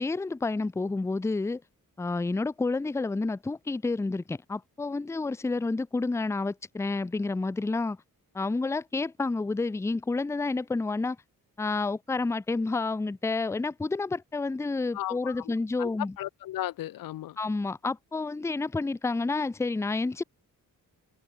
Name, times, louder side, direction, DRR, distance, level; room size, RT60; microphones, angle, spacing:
voice 1, 0.0-1.6 2.0-8.0 8.3-11.2 11.6-16.1 17.4-20.2, left 3 dB, 10° left, 0.5 m, -29 dB
voice 2, 14.9-15.5 15.8-17.4, left 14 dB, 85° left, 0.6 m, -35 dB
open air
wide cardioid pair, 175°, 34 cm